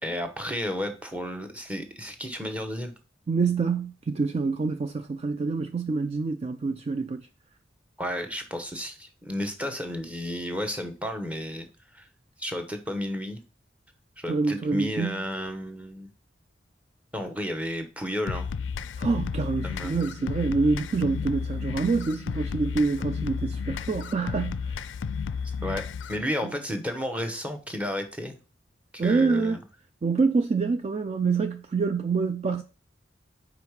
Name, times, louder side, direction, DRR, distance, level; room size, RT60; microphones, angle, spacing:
voice 1, 0.0-2.9 8.0-11.7 11.9-12.1 12.4-13.4 14.2-16.1 17.1-18.5 19.6-20.0 25.6-28.4 28.9-29.6, left 1 dB, 5° right, 0.9 m, -32 dB
voice 2, 3.3-7.3 14.3-15.2 19.0-24.9 26.4-26.5 29.0-29.6 30.0-32.6, right 4 dB, 35° right, 0.3 m, -26 dB
sound 1, 18.3-26.3, left 6 dB, 85° left, 0.4 m, -32 dB
5.2 x 4.8 x 4.7 m
head